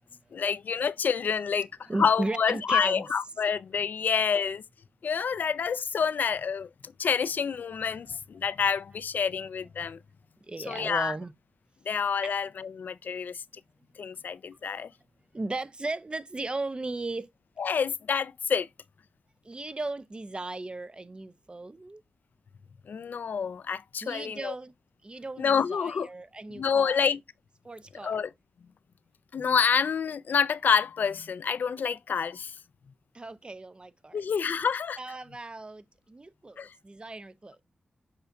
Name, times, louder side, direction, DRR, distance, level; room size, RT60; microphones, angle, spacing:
voice 1, 0.3-1.7 2.0-4.6 5.0-10.0 10.7-11.1 11.9-13.4 14.0-14.9 17.6-18.7 22.9-24.5 25.4-26.1 26.5-27.2 28.0-28.3 29.3-32.5 34.1-35.0 36.6-36.7, left 6 dB, 75° left, 0.4 m, -28 dB
voice 2, 1.9-3.1 8.1-8.2 10.4-11.3 12.2-12.3 15.3-17.3 19.4-22.0 24.0-24.7 25.0-27.1 27.6-28.2 33.1-34.3 35.0-37.6, right 2 dB, 30° right, 0.8 m, -36 dB
6.9 x 5.3 x 2.6 m
cardioid pair, 55°, 3 cm